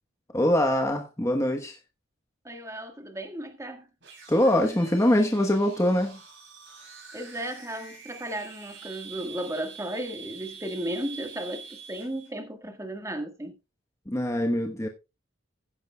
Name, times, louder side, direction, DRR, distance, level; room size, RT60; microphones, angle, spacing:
voice 1, 0.3-1.8 4.3-6.2 14.1-14.9, left 1 dB, 15° left, 1.1 m, -23 dB
voice 2, 2.4-3.9 7.1-13.5, right 1 dB, 15° right, 1.6 m, -35 dB
sound 1, 4.0-12.3, right 6 dB, 60° right, 7.3 m, -45 dB
15.0 x 10.0 x 2.3 m
head